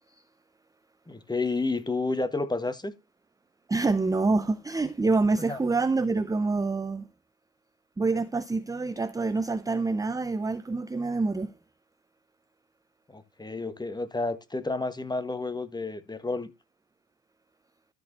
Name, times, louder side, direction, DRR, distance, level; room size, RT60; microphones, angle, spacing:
voice 1, 1.1-2.9 5.4-5.6 13.1-16.5, left 3 dB, 10° left, 1.4 m, -30 dB
voice 2, 3.7-7.1 8.0-11.5, right 3 dB, 10° right, 0.5 m, -26 dB
13.0 x 4.6 x 4.0 m
supercardioid pair, 85°, 38 cm